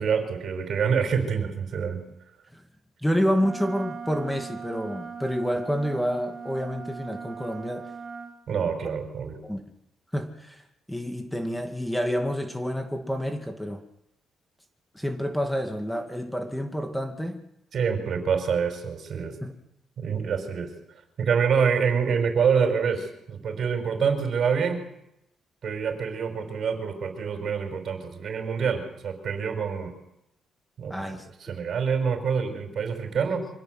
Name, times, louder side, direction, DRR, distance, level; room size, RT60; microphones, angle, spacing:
voice 1, 0.0-2.0 8.5-9.4 17.7-19.4 20.0-20.7 21.2-24.8 25.6-29.9 30.8-31.0 31.4-33.5, right 6 dB, 60° right, 6 dB, 5.4 m, -26 dB
voice 2, 3.0-7.9 9.4-9.6 10.1-10.6 10.9-13.8 14.9-17.4 19.4-19.5 30.9-31.2, equal, 5° left, 5 dB, 2.4 m, -28 dB
Wind instrument woodwind instrument, 3.4-8.3, right 5 dB, 45° right, 7.1 m, -39 dB
25.5 x 17.0 x 7.9 m, 0.81 s
cardioid pair, 90°, 0 cm